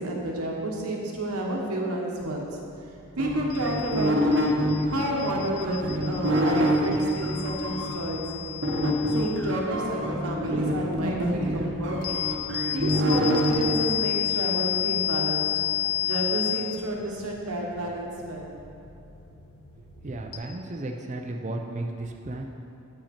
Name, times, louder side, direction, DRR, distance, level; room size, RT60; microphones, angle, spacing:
voice 1, 0.0-2.5 3.2-4.3 4.9-8.7 9.1-12.2 12.7-15.5 16.0-18.5, right 1 dB, 85° right, -1 dB, 1.1 m, -30 dB
sound 1, 2.2-20.4, left 12 dB, 75° left, 0.7 m, -33 dB
sound 2, 3.2-7.9 8.6-13.5, equal, 55° right, 0.8 m, -26 dB
voice 2, 20.0-22.4, right 2 dB, 30° right, 3 dB, 0.4 m, -34 dB
8.7 x 5.8 x 4.2 m, 2.6 s
head